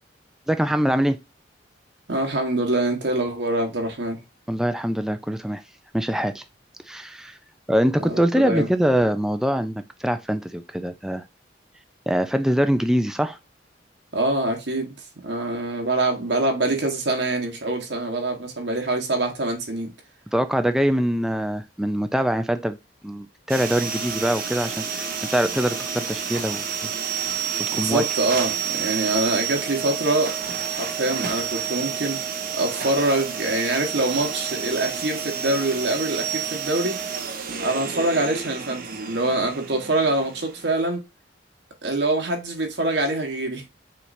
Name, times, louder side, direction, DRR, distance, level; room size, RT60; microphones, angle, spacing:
voice 1, 0.5-1.2 4.5-5.6 5.9-6.4 6.9-7.3 7.7-11.2 12.1-13.4 20.3-22.8 23.0-26.9 27.6-28.0, equal, 5° right, 0.4 m, -23 dB
voice 2, 2.1-4.2 8.0-8.7 14.1-15.0 15.2-19.9 27.7-30.4 30.7-32.2 32.5-37.1 37.6-41.0 41.8-43.6, right 2 dB, 75° right, 1.3 m, -25 dB
sound 1, 23.5-40.8, right 7 dB, 55° right, 0.8 m, -30 dB
5.6 x 3.2 x 2.6 m
head